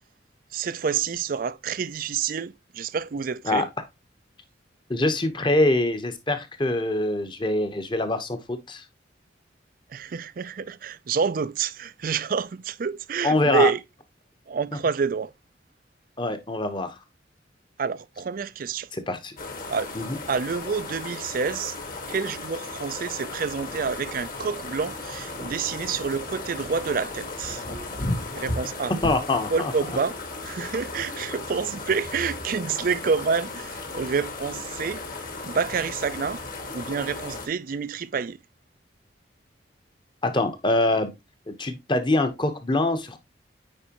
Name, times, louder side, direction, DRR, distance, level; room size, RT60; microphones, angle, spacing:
voice 1, 0.5-3.7 9.9-13.8 14.5-15.3 17.8-18.9 19.7-19.9 20.3-21.8 22.1-27.6 28.4-28.9 29.5-30.1 30.4-35.0 35.4-36.4 36.7-38.4, right 5 dB, 50° right, 0.4 m, -28 dB
voice 2, 4.9-8.8 13.2-13.7 16.2-16.9 18.9-19.4 19.9-20.2 28.9-29.7 40.2-41.1 41.5-43.2, left 2 dB, 25° left, 1.0 m, -24 dB
sound 1, 19.4-37.5, left 3 dB, 50° left, 1.9 m, -36 dB
sound 2, 23.4-29.2, left 1 dB, 75° left, 1.8 m, -36 dB
8.9 x 4.7 x 3.0 m
head